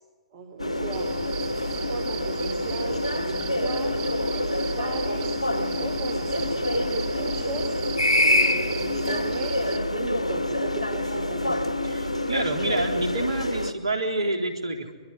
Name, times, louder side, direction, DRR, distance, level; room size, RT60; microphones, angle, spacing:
voice 1, 0.3-1.1 1.7-4.0 4.3-6.4 6.7-7.8 8.2-11.6, right 4 dB, 40° right, 6 dB, 3.1 m, -37 dB
sound 1, 0.6-13.7, left 1 dB, 80° left, 1.5 m, -26 dB
sound 2, 0.9-9.8, right 10 dB, 25° right, 1.1 m, -40 dB
voice 2, 11.8-14.9, right 2 dB, 65° right, 5 dB, 3.7 m, -28 dB
24.5 x 22.5 x 9.9 m, 1.4 s
figure-of-eight pair, 120°, 3 cm